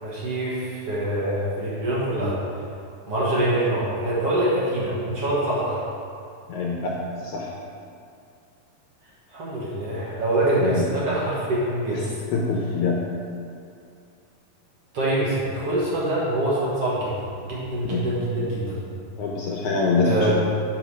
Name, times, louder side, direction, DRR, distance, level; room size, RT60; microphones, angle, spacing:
voice 1, 0.0-2.4 3.1-5.8 9.3-12.1 14.9-18.8 20.0-20.3, right 1 dB, 55° right, -8 dB, 2.0 m, -25 dB
voice 2, 6.5-6.9 7.2-7.5 10.6-10.8 11.9-12.0 12.3-13.0 17.9-18.0 19.2-20.3, left 4 dB, 80° left, -2 dB, 1.8 m, -24 dB
7.2 x 5.0 x 6.1 m, 2.4 s
omnidirectional pair, 4.0 m